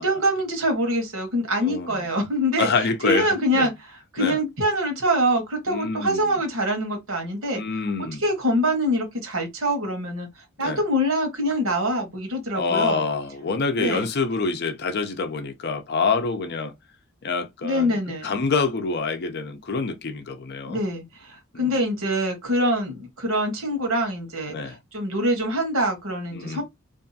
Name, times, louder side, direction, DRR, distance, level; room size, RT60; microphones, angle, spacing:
voice 1, 0.0-7.6 8.0-13.0 13.8-14.0 17.6-18.3 20.7-26.6, equal, 70° right, 1.1 m, -25 dB
voice 2, 1.6-2.0 2.6-3.3 3.5-3.7 4.2-4.4 5.7-6.2 7.5-8.2 10.6-10.8 12.5-16.7 17.2-18.0 18.2-20.8 21.5-21.7 24.5-24.8 26.3-26.6, left 4 dB, 50° left, 0.5 m, -26 dB
2.6 x 2.4 x 2.6 m
head